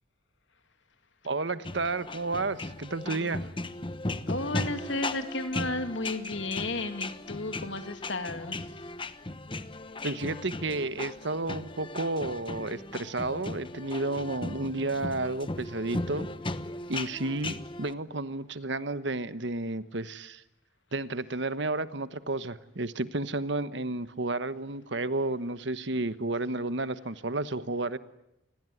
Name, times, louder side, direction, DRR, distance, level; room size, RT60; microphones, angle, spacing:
voice 1, 1.2-3.5 10.0-16.3 16.9-20.4 20.9-28.0, right 2 dB, 60° right, 13 dB, 1.2 m, -32 dB
sound 1, 1.6-17.9, left 2 dB, 25° left, 1.1 m, -37 dB
voice 2, 4.3-8.9, left 2 dB, 70° left, 8 dB, 2.7 m, -33 dB
28.0 x 21.0 x 9.4 m, 0.87 s
head